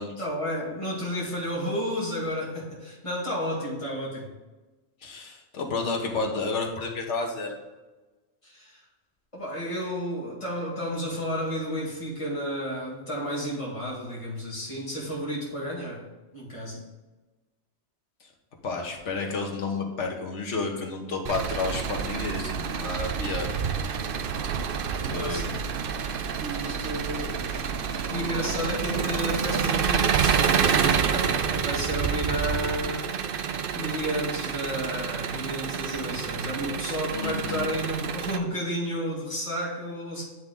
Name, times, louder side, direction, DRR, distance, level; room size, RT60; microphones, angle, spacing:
voice 1, 0.2-4.3 8.4-8.8 9.3-16.0 16.3-16.8 25.0-25.6 26.4-40.3, equal, 25° left, -6 dB, 1.9 m, -32 dB
voice 2, 5.0-7.5 18.6-23.5 25.1-25.4 37.1-37.7, left 3 dB, 80° left, 2 dB, 1.4 m, -31 dB
Engine, 21.2-38.4, right 7 dB, 60° right, 0.6 m, -28 dB
9.5 x 3.6 x 3.8 m, 1.2 s
omnidirectional pair, 1.2 m